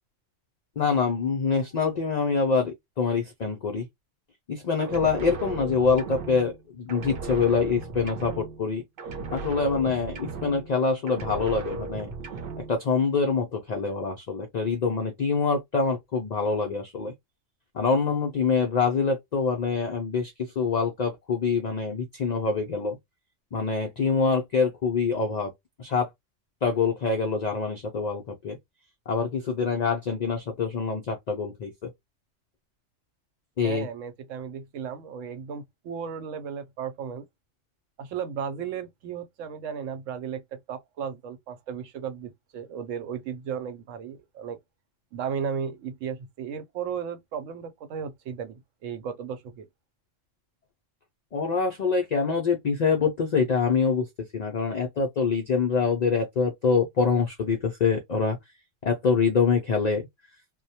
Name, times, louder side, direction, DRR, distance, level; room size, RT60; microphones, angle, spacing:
voice 1, 0.8-3.9 4.5-8.8 9.3-12.1 12.6-17.1 17.7-23.0 23.5-25.5 25.8-26.1 26.6-28.6 29.1-31.9 33.6-33.9 51.3-58.4 58.8-60.1, left 5 dB, 80° left, 0.3 m, -25 dB
sound 1, 4.8-6.6 6.9-8.7 9.0-10.8 11.1-12.8, right 4 dB, 55° right, 0.7 m, -36 dB
voice 2, 33.6-37.2 38.0-44.6 45.1-49.7, right 7 dB, 85° right, 1.0 m, -35 dB
2.2 x 2.1 x 2.7 m
omnidirectional pair, 1.3 m